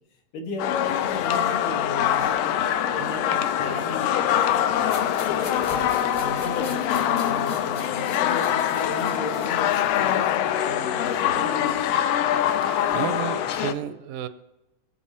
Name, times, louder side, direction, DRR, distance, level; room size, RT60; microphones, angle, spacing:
voice 1, 0.3-4.7 5.0-10.2 10.6-11.9, left 2 dB, 70° left, 3 dB, 2.8 m, -36 dB
sound 1, 0.6-13.7, left 10 dB, 85° left, 2.4 m, -24 dB
sound 2, 4.9-10.3, left 2 dB, 40° left, 1.3 m, -40 dB
voice 2, 12.6-14.3, right 9 dB, 85° right, 12 dB, 2.2 m, -32 dB
20.0 x 8.8 x 4.2 m, 0.99 s
omnidirectional pair, 4.0 m